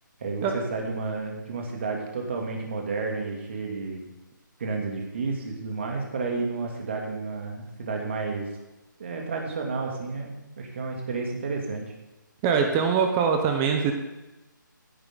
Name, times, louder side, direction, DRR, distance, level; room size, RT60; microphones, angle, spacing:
voice 1, 0.2-4.0 4.6-8.5 9.0-11.8, right 4 dB, 35° right, 0 dB, 2.7 m, -31 dB
voice 2, 12.4-13.9, right 6 dB, 10° right, 4 dB, 0.6 m, -23 dB
16.0 x 10.0 x 3.9 m, 1.0 s
hypercardioid pair, 175°, 11 cm